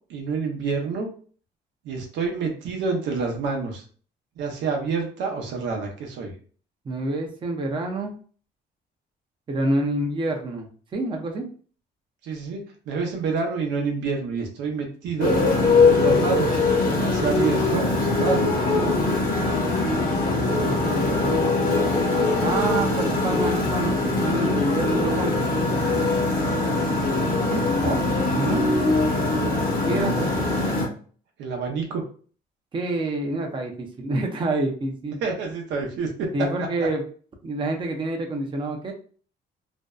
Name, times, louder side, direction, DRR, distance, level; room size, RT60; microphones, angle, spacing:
voice 1, 0.1-1.1 1.8-3.8 4.4-6.4 12.2-15.3 15.7-16.6 16.9-18.9 27.6-28.0 29.2-29.5 29.8-30.3 31.4-32.1 35.2-36.3, right 4 dB, 90° right, 2 dB, 0.7 m, -28 dB
voice 2, 6.9-8.1 9.5-11.5 20.4-21.6 22.4-25.5 27.5-27.6 28.3-28.6 29.5-30.2 32.7-35.2 36.3-37.0 37.4-38.9, right 2 dB, 25° right, 2 dB, 0.5 m, -28 dB
Motorcycle, 15.2-30.9, left 3 dB, 55° left, 0.9 m, -22 dB
2.5 x 2.1 x 2.3 m, 0.42 s
cardioid pair, 120°, 18 cm